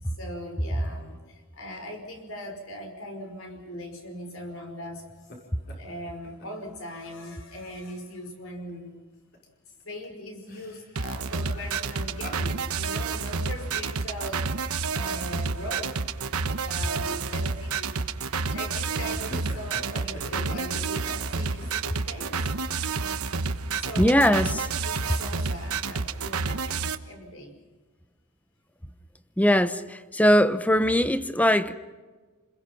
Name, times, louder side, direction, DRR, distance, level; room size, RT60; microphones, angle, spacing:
voice 1, 0.0-5.1 5.7-9.0 9.8-14.5 14.9-16.0 16.5-17.9 18.3-22.5 23.7-24.5 24.8-27.6, equal, 65° left, 5.4 m, -40 dB
sound 1, 5.1-5.4 5.7-6.7 7.0-7.1 7.6-7.8 8.7-8.8 9.1-9.4 9.8-14.9 15.2-15.3 16.1-16.3 17.0-17.4 17.8-18.4 18.9-22.1, left 1 dB, 50° left, 6.3 m, -46 dB
sound 2, 11.0-27.0, right 4 dB, 80° right, 1.1 m, -30 dB
voice 2, 24.0-24.5 29.4-31.8, equal, 5° left, 0.9 m, -21 dB
29.0 x 21.5 x 5.9 m
head